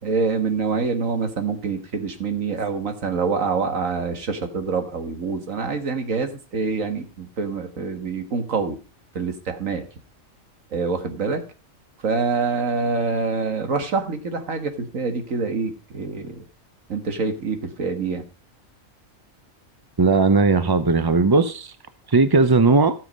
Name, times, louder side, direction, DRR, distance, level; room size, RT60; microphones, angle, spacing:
voice 1, 0.0-8.8 9.1-9.9 10.7-11.4 12.0-16.4 16.9-18.2, right 4 dB, 80° right, 2.0 m, -26 dB
voice 2, 20.0-21.7 22.1-22.9, right 3 dB, 30° right, 0.4 m, -17 dB
15.5 x 7.0 x 5.3 m
omnidirectional pair, 1.4 m